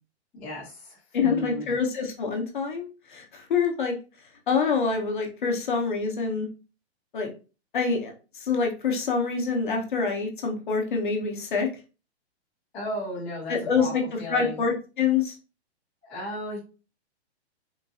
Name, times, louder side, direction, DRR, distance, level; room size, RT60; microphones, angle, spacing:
voice 1, 0.3-1.6 12.7-13.9 14.2-14.6 16.0-16.6, equal, 5° left, -11 dB, 0.6 m, -35 dB
voice 2, 1.1-3.9 4.5-6.5 7.1-7.3 7.7-11.7 13.5-15.4, left 5 dB, 45° left, 2 dB, 0.7 m, -26 dB
3.8 x 2.5 x 2.3 m, 0.33 s
hypercardioid pair, 180°, 33 cm